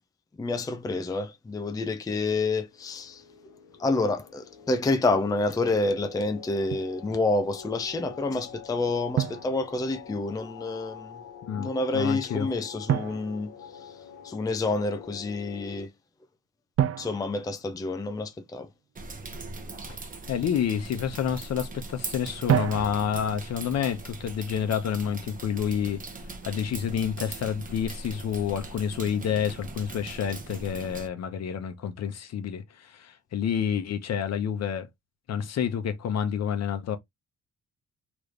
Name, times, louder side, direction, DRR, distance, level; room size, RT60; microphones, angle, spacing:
voice 1, 0.4-3.2 3.8-11.2 11.5-13.9 14.2-15.9 17.0-18.7, left 2 dB, 10° left, 0.5 m, -28 dB
sound 1, 2.5-15.9, left 7 dB, 90° left, 0.7 m, -46 dB
Drum, 6.7-7.0 9.2-10.3 12.9-14.3 16.8-18.5 22.5-23.4, right 10 dB, 50° right, 0.5 m, -30 dB
voice 2, 11.4-12.5 20.3-26.0 26.4-34.9 35.3-37.0, left 8 dB, 60° left, 0.8 m, -29 dB
sound 2, 19.0-31.1, right 3 dB, 25° right, 0.9 m, -40 dB
3.2 x 3.1 x 2.5 m
cardioid pair, 90°, 30 cm